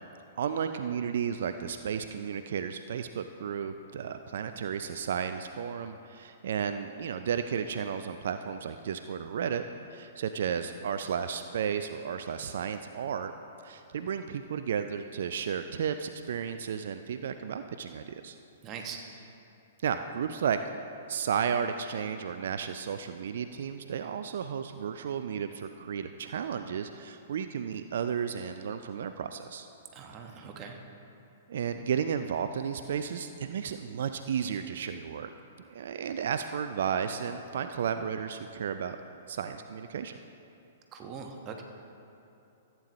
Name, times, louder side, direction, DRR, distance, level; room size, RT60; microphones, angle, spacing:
voice 1, 0.4-9.6 9.9-13.3 13.6-18.4 19.8-20.6 21.1-29.7 31.5-35.3 35.7-39.0 39.3-40.2, right 7 dB, 60° right, 9 dB, 0.4 m, -33 dB
voice 2, 18.6-19.0 29.9-30.8 40.9-41.6, right 6 dB, 30° right, 3 dB, 1.1 m, -41 dB
14.5 x 9.0 x 3.1 m, 2.8 s
figure-of-eight pair, 110°, 0 cm